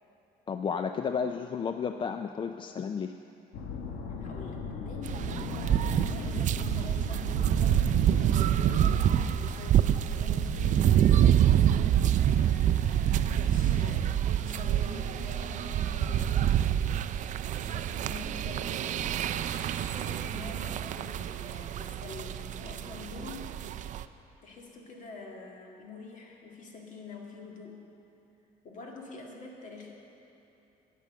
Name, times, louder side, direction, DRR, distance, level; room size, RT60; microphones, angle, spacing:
voice 1, 0.5-3.2, left 6 dB, 30° left, 7 dB, 0.3 m, -32 dB
sound 1, 3.5-17.0, left 4 dB, 85° left, 1.2 m, -40 dB
voice 2, 4.2-19.2 19.5-23.7 24.4-27.9 28.6-29.9, left 3 dB, 50° left, 0 dB, 1.9 m, -46 dB
sound 2, 5.0-24.0, right 11 dB, 50° right, 0.4 m, -27 dB
9.9 x 8.5 x 6.6 m, 3.0 s
cardioid pair, 110°, 17 cm